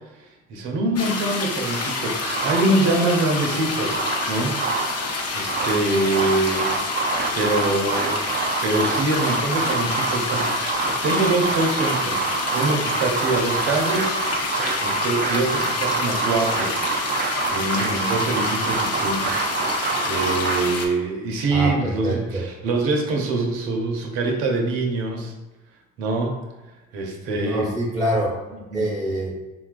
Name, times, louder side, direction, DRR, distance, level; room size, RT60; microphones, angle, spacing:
voice 1, 0.5-4.6 4.9-8.2 8.6-14.5 14.8-16.7 17.5-25.3 26.0-26.4 26.9-27.7 28.7-28.9, right 2 dB, 75° right, 1 dB, 0.7 m, -24 dB
sound 1, 0.9-20.9, left 3 dB, 45° left, 0.7 m, -28 dB
sound 2, 2.3-3.1 3.6-5.0 5.3-20.6, right 4 dB, 30° right, 0.4 m, -26 dB
voice 2, 21.5-22.4 27.3-28.4 28.7-29.3, right 1 dB, ahead, -6 dB, 1.0 m, -25 dB
3.9 x 2.3 x 2.4 m, 1.1 s
hypercardioid pair, 55°, 35 cm